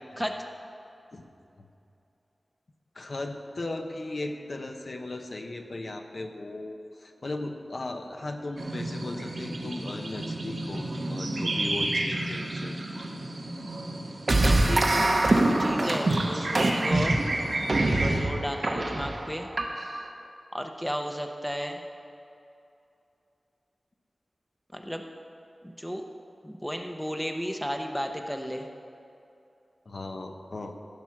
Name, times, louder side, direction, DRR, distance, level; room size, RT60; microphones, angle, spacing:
voice 1, 2.9-12.8 29.9-30.7, left 2 dB, 55° left, 4 dB, 0.9 m, -37 dB
sound 1, 8.6-18.2, right 2 dB, 85° right, 1.6 m, -32 dB
sound 2, 14.3-20.1, right 2 dB, 50° right, 1.0 m, -24 dB
voice 2, 14.4-17.2 18.0-19.5 20.5-21.8 24.7-25.0 25.6-26.0 26.4-28.7, equal, ahead, 4 dB, 0.7 m, -34 dB
15.5 x 6.1 x 5.9 m, 2.7 s
wide cardioid pair, 95°, 0 cm